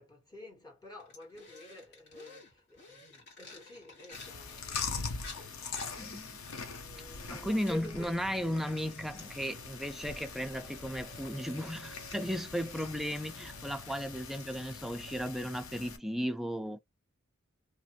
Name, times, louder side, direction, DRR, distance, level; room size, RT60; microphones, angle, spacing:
voice 1, 0.0-6.4 6.7-8.1, left 2 dB, 20° left, 1.4 m, -49 dB
sound 1, 1.0-7.4 7.7-15.2, left 2 dB, 55° left, 1.6 m, -53 dB
Chewing mastication, 4.1-16.0, left 5 dB, 85° left, 0.8 m, -43 dB
voice 2, 6.0-6.3 7.3-16.8, equal, ahead, 0.3 m, -35 dB
2.8 x 2.5 x 2.9 m
head